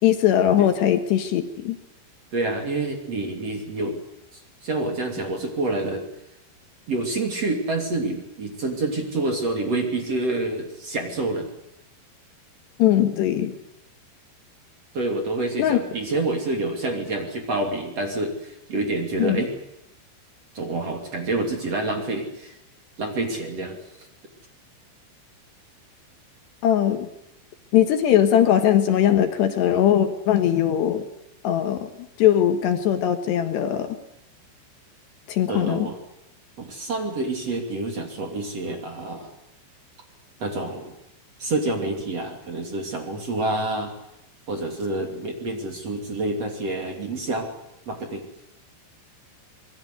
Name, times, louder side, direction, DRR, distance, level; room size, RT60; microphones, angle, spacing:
voice 1, 0.0-1.8 12.8-13.5 15.6-15.8 19.2-19.5 26.6-27.1 27.7-31.1 31.4-31.9 32.2-33.9 35.3-35.9, left 10 dB, 70° left, 7 dB, 3.4 m, -20 dB
voice 2, 2.3-4.0 4.3-6.0 6.9-11.5 14.9-19.5 20.5-22.5 23.0-23.8 35.5-36.0 36.6-39.3 40.4-40.9 41.4-43.9 44.5-47.5 47.9-48.2, right 2 dB, 40° right, 3 dB, 3.4 m, -27 dB
26.5 x 21.5 x 8.2 m, 0.83 s
omnidirectional pair, 5.5 m